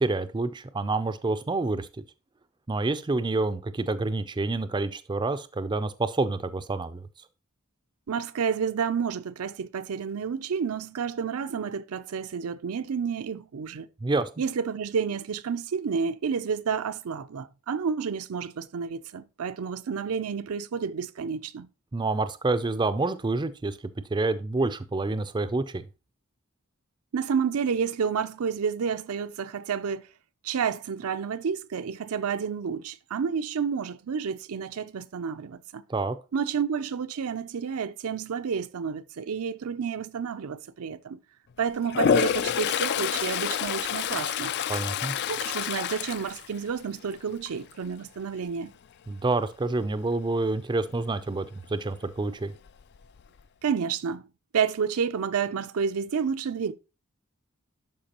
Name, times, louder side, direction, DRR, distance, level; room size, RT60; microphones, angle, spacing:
voice 1, 0.0-1.9 2.7-7.0 14.0-14.3 21.9-23.8 24.1-25.8 35.9-36.2 44.7-45.1 49.1-52.5, right 3 dB, 20° right, 0.4 m, -28 dB
voice 2, 8.1-13.9 14.4-21.7 27.1-30.1 30.4-35.8 36.3-41.2 41.6-44.5 45.3-48.7 53.6-54.2 54.5-56.7, right 6 dB, 75° right, 0.5 m, -30 dB
Toilet flush, 41.9-47.1 47.5-47.8 52.3-52.4 52.7-53.4, left 8 dB, 50° left, 0.3 m, -28 dB
11.5 x 4.6 x 2.9 m
head